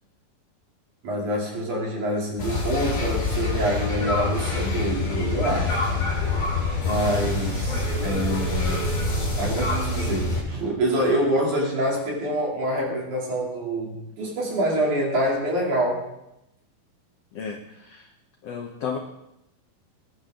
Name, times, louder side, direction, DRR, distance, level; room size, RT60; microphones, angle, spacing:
voice 1, 1.0-6.0 6.8-9.1 9.4-16.0, right 1 dB, 55° right, -2 dB, 4.3 m, -26 dB
sound 1, 2.4-10.4, left 2 dB, 30° left, 4.3 m, -26 dB
voice 2, 17.3-18.1 18.4-19.0, left 6 dB, 75° left, 3 dB, 1.4 m, -33 dB
20.0 x 11.0 x 3.8 m, 0.85 s
omnidirectional pair, 4.4 m